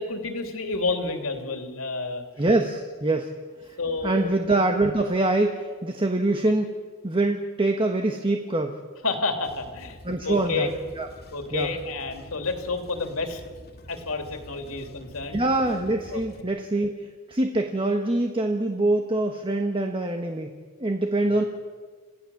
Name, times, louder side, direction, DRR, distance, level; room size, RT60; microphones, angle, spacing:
voice 1, 0.0-2.3 3.8-4.3 9.0-10.0 10.2-10.7 11.3-13.4 13.9-15.4 16.1-16.2 21.3-21.4, left 3 dB, 85° left, 4 dB, 2.9 m, -29 dB
voice 2, 2.4-3.3 3.6-3.8 4.0-8.8 10.0-10.7 11.0-11.1 11.5-11.7 15.3-21.4, right 2 dB, 25° right, 4 dB, 1.2 m, -24 dB
sound 1, 9.4-16.4, left 1 dB, 50° left, 2.2 m, -47 dB
27.5 x 16.5 x 7.1 m, 1.5 s
head